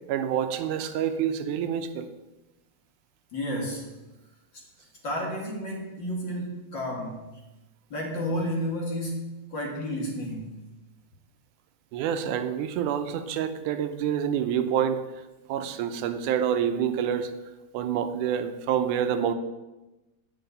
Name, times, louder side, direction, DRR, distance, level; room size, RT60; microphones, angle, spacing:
voice 1, 0.1-2.1 11.9-15.0 15.5-17.3 17.7-19.3, right 9 dB, 90° right, 9 dB, 2.2 m, -27 dB
voice 2, 3.3-4.0 5.0-7.2 7.9-10.6, equal, 40° left, -1 dB, 2.2 m, -31 dB
9.6 x 5.6 x 8.0 m, 1.0 s
omnidirectional pair, 3.5 m